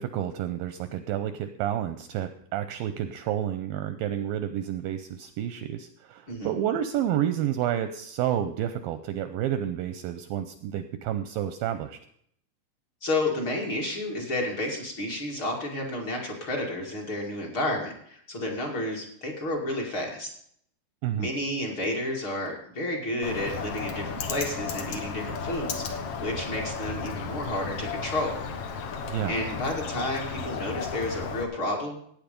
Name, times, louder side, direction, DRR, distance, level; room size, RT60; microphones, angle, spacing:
voice 1, 0.0-12.0 21.0-21.3 29.1-29.3, right 10 dB, 80° right, 11 dB, 2.1 m, -30 dB
voice 2, 13.0-20.3 21.2-28.4 29.2-32.0, left 1 dB, 40° left, -1 dB, 2.4 m, -31 dB
Bird, 23.2-31.4, left 5 dB, 80° left, 1.3 m, -34 dB
17.0 x 9.0 x 5.2 m, 0.67 s
omnidirectional pair, 4.7 m